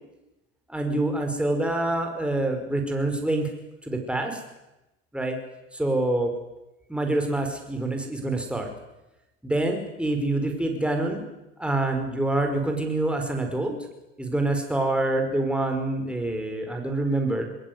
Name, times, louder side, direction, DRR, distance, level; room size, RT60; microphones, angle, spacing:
voice 1, 0.7-3.5 3.8-4.4 5.1-5.4 5.7-6.3 6.9-8.7 9.4-11.2 11.6-13.8 14.2-17.4, right 2 dB, 5° right, 3 dB, 5.1 m, -26 dB
22.0 x 18.5 x 9.5 m, 0.98 s
hypercardioid pair, 85°, 35 cm